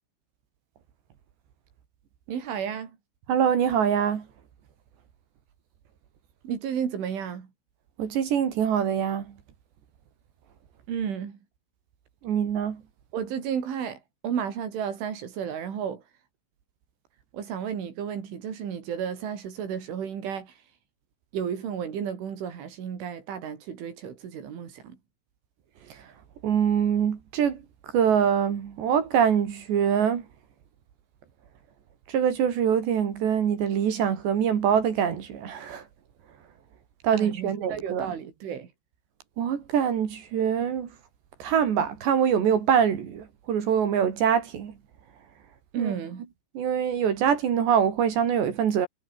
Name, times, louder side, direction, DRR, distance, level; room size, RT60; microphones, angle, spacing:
voice 1, 2.3-2.9 6.4-7.5 10.9-11.4 13.1-16.0 17.3-20.6 21.3-25.0 37.1-38.7 45.7-46.2, right 8 dB, 90° right, 6.4 m, -32 dB
voice 2, 3.3-4.2 8.0-9.3 12.2-12.8 26.4-27.6 27.9-30.2 32.1-35.8 37.0-38.1 39.4-40.9 41.4-44.7 45.8-45.9 46.5-48.9, right 8 dB, 70° right, 5.0 m, -24 dB
omnidirectional pair, 5.4 m